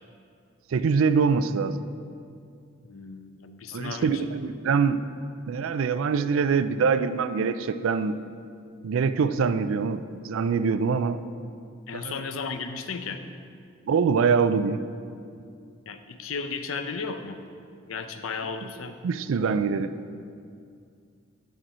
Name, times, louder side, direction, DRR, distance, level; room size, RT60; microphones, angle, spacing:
voice 1, 0.7-1.8 3.7-5.0 5.5-8.2 8.8-11.2 11.9-12.2 13.9-14.8 19.0-19.9, right 5 dB, 80° right, 13 dB, 0.4 m, -24 dB
voice 2, 2.8-4.3 11.9-13.2 15.9-17.4 17.9-19.0, left 5 dB, 80° left, 8 dB, 0.6 m, -34 dB
9.2 x 7.5 x 4.2 m, 2.3 s
head